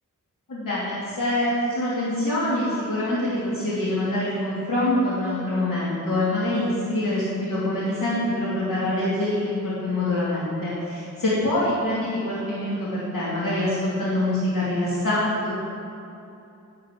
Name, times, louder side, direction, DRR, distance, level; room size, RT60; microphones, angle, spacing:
voice 1, 0.5-15.5, left 1 dB, 85° left, -9 dB, 2.8 m, -25 dB
10.0 x 7.5 x 8.5 m, 2.8 s
wide cardioid pair, 110°, 32 cm